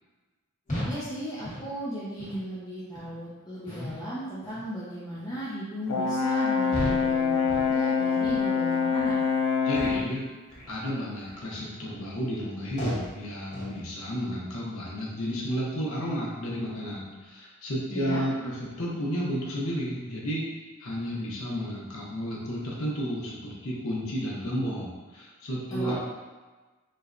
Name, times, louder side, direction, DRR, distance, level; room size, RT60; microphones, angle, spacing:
sound 1, 0.7-1.0 1.4-1.7 2.2-2.4 2.9-3.1 3.7-4.0 4.4-4.7 5.2-5.4 5.9-6.1 6.7-7.1 7.5-7.8 8.2-8.4 9.0-9.1 9.7-10.1 10.5-10.8 11.3-11.5 12.0-12.1 12.8-13.1 13.5-13.8, equal, 35° left, 1.3 m, -35 dB
voice 1, 0.8-9.2 17.9-18.2 25.7-25.9, equal, 20° left, -9 dB, 0.5 m, -36 dB
Brass instrument, 5.9-10.1, left 5 dB, 85° left, 0.4 m, -25 dB
voice 2, 9.6-10.2 10.7-20.5 20.8-25.9, equal, 70° left, -5 dB, 0.8 m, -32 dB
4.3 x 2.2 x 2.5 m, 1.3 s
head